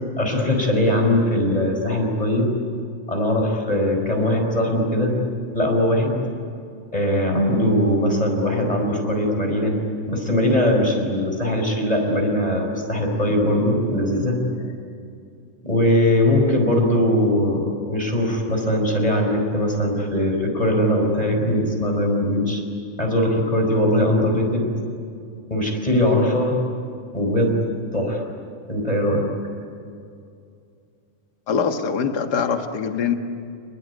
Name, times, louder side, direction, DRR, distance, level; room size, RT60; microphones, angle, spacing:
voice 1, 0.2-2.5 3.1-5.1 5.5-6.2 6.9-9.7 10.1-14.4 15.6-22.6 23.0-24.7 25.5-26.5 27.1-27.6 27.9-28.2 28.7-29.2, left 1 dB, 10° left, 2 dB, 4.9 m, -20 dB
voice 2, 31.5-33.1, left 6 dB, 40° left, 5 dB, 1.8 m, -23 dB
30.0 x 21.0 x 9.6 m, 2.4 s
omnidirectional pair, 3.4 m